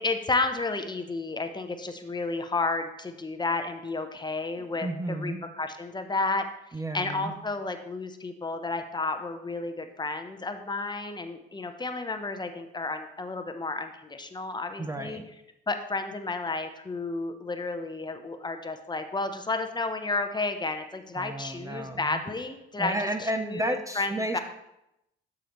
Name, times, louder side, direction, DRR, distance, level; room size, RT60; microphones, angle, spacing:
voice 1, 0.0-6.5 6.9-15.2 15.7-23.0 23.4-24.4, left 3 dB, 20° left, 7 dB, 0.7 m, -32 dB
voice 2, 4.6-5.4 6.7-7.3 14.8-15.3 21.1-22.2 22.8-24.4, right 1 dB, 15° right, 7 dB, 0.6 m, -32 dB
12.5 x 4.9 x 3.0 m, 0.85 s
cardioid pair, 90°, 20 cm